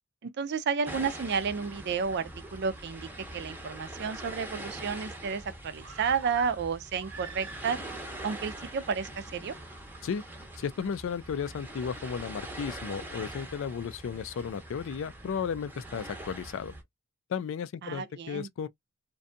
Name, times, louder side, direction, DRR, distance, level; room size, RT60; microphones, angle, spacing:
voice 1, 0.2-3.1 3.3-7.8 8.2-9.5 17.8-18.5, right 6 dB, 55° right, 0.4 m, -31 dB
sound 1, 0.9-16.8, right 1 dB, 10° right, 0.6 m, -43 dB
sound 2, 5.8-8.0 8.3-8.4, right 4 dB, 80° right, 0.9 m, -46 dB
voice 2, 10.6-16.7 17.3-18.7, left 6 dB, 65° left, 0.3 m, -34 dB
2.6 x 2.2 x 2.5 m
head